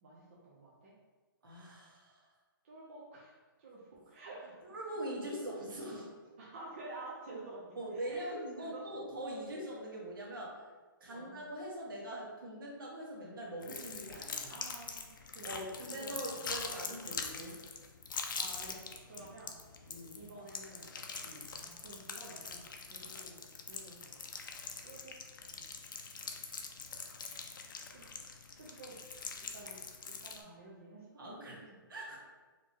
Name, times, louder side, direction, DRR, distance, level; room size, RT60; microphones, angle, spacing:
voice 1, 0.0-0.9 2.6-4.6 6.4-8.3 8.6-8.8 11.0-11.4 14.5-16.2 18.3-21.0 21.6-24.2 24.8-25.1 25.5-25.7 27.9-28.2 28.6-29.0 29.4-29.8 30.1-31.6, right 2 dB, 35° right, -6 dB, 0.7 m, -51 dB
voice 2, 1.4-2.3 4.6-6.1 7.3-7.4 7.7-10.7 11.0-14.5 15.4-17.6 19.1-19.3 19.9-20.2 21.2-21.5 26.4-26.7 30.4-30.5 31.2-31.6 31.9-32.2, right 1 dB, 70° right, -3 dB, 1.4 m, -43 dB
sound 1, 13.6-30.4, left 5 dB, 65° left, 0.5 m, -44 dB
4.4 x 3.0 x 2.9 m, 1.3 s
hypercardioid pair, 170°, 12 cm